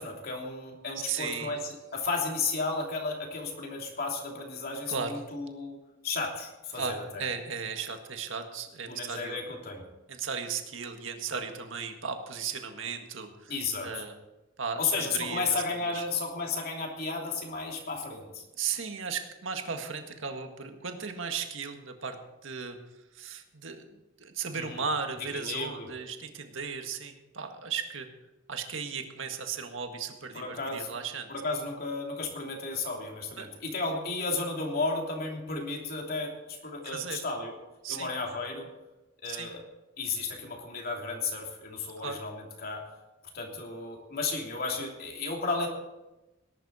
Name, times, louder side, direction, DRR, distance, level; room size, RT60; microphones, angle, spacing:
voice 1, 0.0-5.8 6.0-7.2 8.9-9.8 13.5-14.1 14.8-18.4 24.5-24.8 25.3-25.9 30.3-30.9 31.3-37.6 37.9-38.7 39.2-39.6 40.0-42.8 43.3-45.7, left 3 dB, 50° left, 0 dB, 3.1 m, -33 dB
voice 2, 1.1-1.5 4.9-5.2 6.7-9.4 10.1-13.5 13.8-14.1 14.6-16.1 18.6-22.2 22.4-22.8 23.1-28.1 28.5-31.3 33.4-33.5 36.8-37.3 37.8-38.1 39.2-39.5 42.0-42.2, right 6 dB, 80° right, 5 dB, 1.8 m, -36 dB
19.0 x 11.5 x 4.3 m, 1.0 s
head